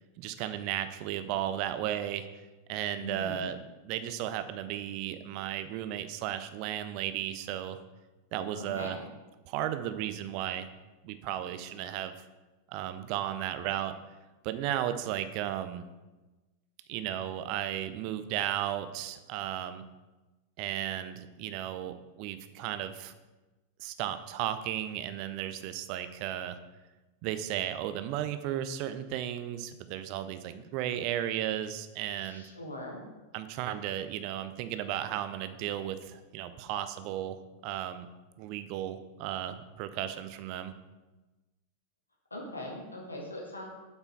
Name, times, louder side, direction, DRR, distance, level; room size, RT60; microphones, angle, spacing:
voice 1, 0.2-2.3 2.7-3.6 3.8-7.8 8.3-9.0 9.5-10.7 11.0-12.1 12.7-14.0 14.4-15.9 16.9-19.8 20.6-23.1 23.8-26.6 27.2-32.5 33.3-38.1 38.4-40.7, right 11 dB, 45° right, 11 dB, 0.6 m, -34 dB
voice 2, 3.0-3.5 8.6-9.0 32.2-33.0 42.3-43.7, left 1 dB, 80° left, -1 dB, 1.9 m, -41 dB
7.8 x 5.6 x 4.6 m, 1.1 s
figure-of-eight pair, 90°, 0 cm